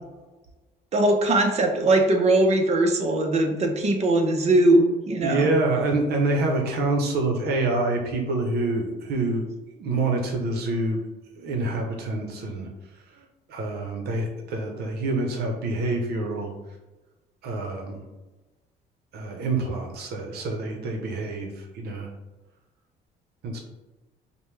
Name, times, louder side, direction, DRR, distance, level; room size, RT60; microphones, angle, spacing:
voice 1, 0.9-5.5, right 2 dB, 40° right, 4 dB, 0.8 m, -20 dB
voice 2, 5.2-9.4 9.8-11.0 11.4-12.7 13.5-16.5 17.4-18.0 19.1-22.1 23.4-23.6, right 2 dB, 70° right, 3 dB, 0.9 m, -26 dB
5.1 x 2.2 x 3.3 m, 1.1 s
cardioid pair, 110°, 17 cm